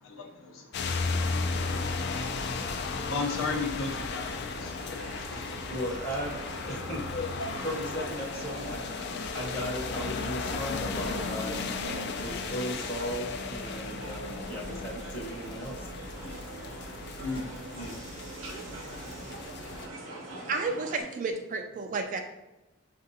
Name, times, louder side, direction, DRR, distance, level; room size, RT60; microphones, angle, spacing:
voice 1, 0.0-0.8 1.2-5.7 7.1-7.6 17.2-17.4 17.7-17.9, left 3 dB, 80° left, 2 dB, 0.7 m, -37 dB
sound 1, 0.7-19.9, left 4 dB, 55° left, 0.3 m, -35 dB
sound 2, 1.3-21.0, right 2 dB, 70° right, 0.8 m, -43 dB
voice 2, 5.7-6.4 6.7-7.0 7.6-8.8 9.3-15.9, equal, 35° left, -3 dB, 0.9 m, -36 dB
voice 3, 20.5-22.2, right 4 dB, 40° right, 4 dB, 0.3 m, -31 dB
6.1 x 2.6 x 2.7 m, 1.0 s
head